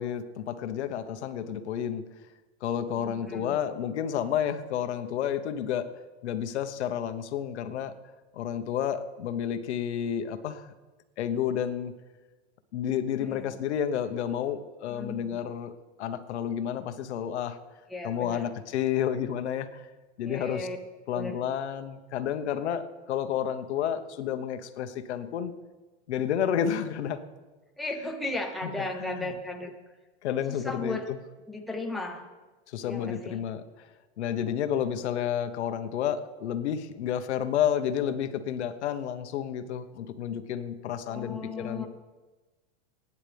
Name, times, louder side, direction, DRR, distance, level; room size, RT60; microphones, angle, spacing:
voice 1, 0.0-2.0 2.6-5.9 6.2-7.9 8.3-10.7 11.2-11.9 12.7-15.7 16.0-17.6 18.0-19.9 20.2-20.7 21.1-25.5 26.1-27.2 28.6-28.7 29.1-29.3 30.2-31.0 32.7-33.6 34.2-41.9, left 9 dB, 85° left, 9 dB, 1.1 m, -30 dB
voice 2, 2.8-3.6 13.2-13.5 14.9-15.4 17.9-18.6 20.2-20.8 21.1-21.4 27.8-29.7 30.5-31.1 31.5-32.3 32.8-33.4 41.1-41.9, left 2 dB, ahead, 1 dB, 0.9 m, -36 dB
24.5 x 9.8 x 3.5 m, 1.2 s
supercardioid pair, 150°, 33 cm